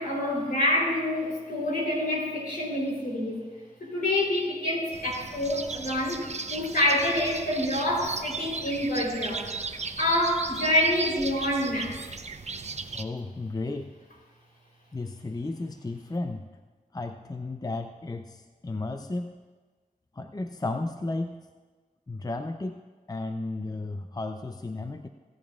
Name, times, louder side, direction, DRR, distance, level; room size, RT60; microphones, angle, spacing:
voice 1, 0.0-3.4 3.9-6.2 6.5-9.5 10.0-11.9, left 1 dB, 75° left, -3 dB, 3.7 m, -27 dB
sound 1, 4.9-13.0, right 4 dB, 50° right, 0.7 m, -36 dB
voice 2, 12.9-13.9 14.9-16.4 16.9-19.3 20.2-21.3 22.1-22.8 23.1-25.1, left 2 dB, 25° left, 7 dB, 0.6 m, -33 dB
25.5 x 8.8 x 2.4 m, 1.4 s
cardioid pair, 40°, 15 cm